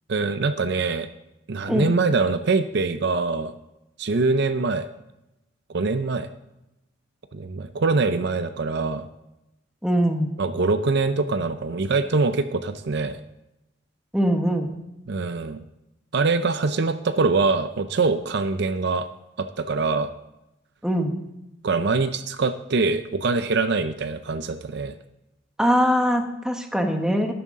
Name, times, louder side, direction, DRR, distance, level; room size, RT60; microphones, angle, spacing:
voice 1, 0.1-1.1 1.5-3.5 4.0-4.9 5.7-6.3 7.3-9.1 10.4-13.2 15.1-15.6 16.1-19.1 19.4-20.1 21.6-24.9, right 3 dB, 55° right, 11 dB, 0.5 m, -23 dB
voice 2, 9.8-10.3 14.1-14.7 20.8-21.2 25.6-27.3, equal, 5° right, 4 dB, 1.1 m, -22 dB
13.0 x 11.0 x 3.7 m, 0.92 s
head